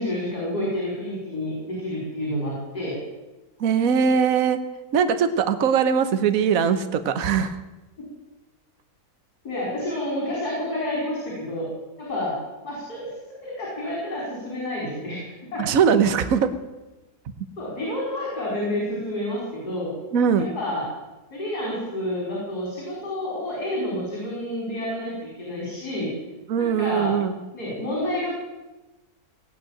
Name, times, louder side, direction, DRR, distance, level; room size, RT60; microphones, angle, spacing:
voice 1, 0.0-3.0 9.4-11.7 12.0-12.4 12.6-13.1 13.4-15.6 17.6-19.9 20.4-20.8 21.3-26.1 26.6-27.1 27.5-28.3, left 1 dB, 80° left, -4 dB, 5.7 m, -29 dB
voice 2, 3.6-4.6 4.9-7.6 15.6-16.5 20.1-20.5 26.5-27.4, right 7 dB, 65° right, 10 dB, 1.4 m, -21 dB
18.0 x 9.1 x 8.9 m, 1.1 s
omnidirectional pair, 1.7 m